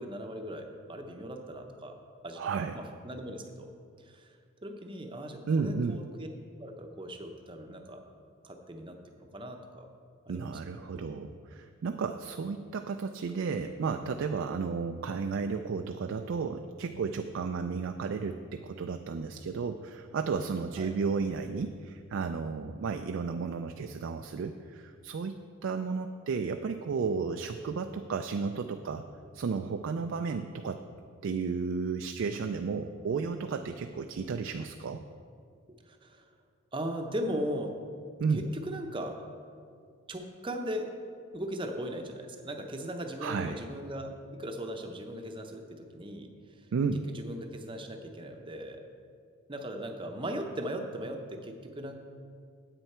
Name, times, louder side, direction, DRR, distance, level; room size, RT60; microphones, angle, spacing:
voice 1, 0.0-2.0 2.2-3.7 4.0-4.4 4.6-6.3 6.6-8.0 8.4-9.9 10.3-10.8 20.8-20.9 35.9-36.3 36.7-37.7 38.3-39.2 40.1-40.9 41.3-46.7 47.1-48.8 49.5-52.0, equal, 20° right, 4 dB, 0.7 m, -38 dB
voice 2, 2.4-2.8 5.5-6.0 10.3-25.3 25.6-29.0 29.3-30.8 31.2-35.0 38.2-38.4 43.2-43.6 46.7-47.1, right 5 dB, 55° right, 6 dB, 0.3 m, -33 dB
9.8 x 8.3 x 4.3 m, 2.2 s
head